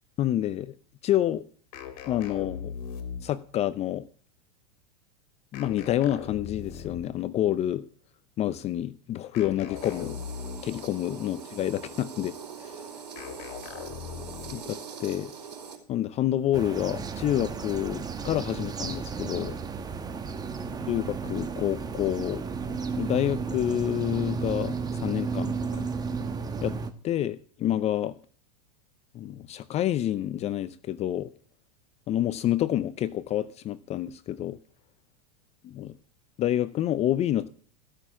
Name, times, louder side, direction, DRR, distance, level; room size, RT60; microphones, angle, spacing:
voice 1, 0.2-0.7 1.0-1.4 2.1-2.7 3.2-4.1 5.5-7.8 8.4-10.2 10.6-12.7 14.5-15.3 15.9-19.6 20.9-22.4 23.0-25.9 26.6-26.8 27.0-28.2 29.1-31.3 32.1-34.6 35.8-36.0 36.4-37.5, left 12 dB, 30° left, 0.6 m, -28 dB
sound 1, 1.7-3.5 5.5-7.2 9.3-10.9 13.1-14.7, left 7 dB, 60° left, 2.6 m, -39 dB
sound 2, 9.8-15.8, right 6 dB, 85° right, 4.0 m, -42 dB
sound 3, 16.5-26.9, right 5 dB, 20° right, 1.2 m, -33 dB
15.0 x 6.5 x 7.3 m
hypercardioid pair, 115°, 21 cm